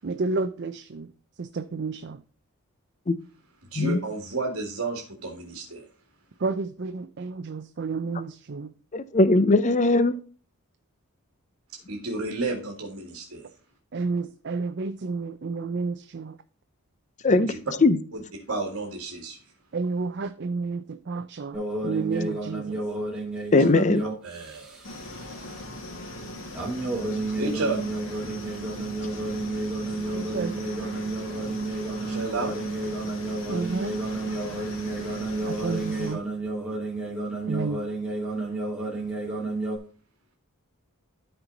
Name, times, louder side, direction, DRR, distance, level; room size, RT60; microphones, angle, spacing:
voice 1, 0.0-1.1 1.4-2.2 6.4-8.7 13.9-16.4 17.3-17.5 19.7-22.8 30.1-30.6 33.5-34.0 35.4-36.3 37.5-37.8, right 4 dB, 50° right, 9 dB, 0.5 m, -31 dB
voice 2, 3.7-5.9 11.9-13.5 17.5-17.6 18.1-18.2 18.5-19.4 24.2-24.8 27.4-27.8 28.1-28.3 32.0-32.6, right 2 dB, 65° right, 1 dB, 1.9 m, -31 dB
voice 3, 8.9-10.1 17.2-17.5 17.8-18.0 23.5-24.0, left 2 dB, 35° left, 15 dB, 0.5 m, -19 dB
sound 1, 21.5-25.1 26.5-39.8, right 2 dB, 5° right, 2.8 m, -31 dB
sound 2, 24.8-36.2, left 1 dB, 65° left, 2.1 m, -39 dB
12.5 x 4.5 x 3.9 m, 0.41 s
head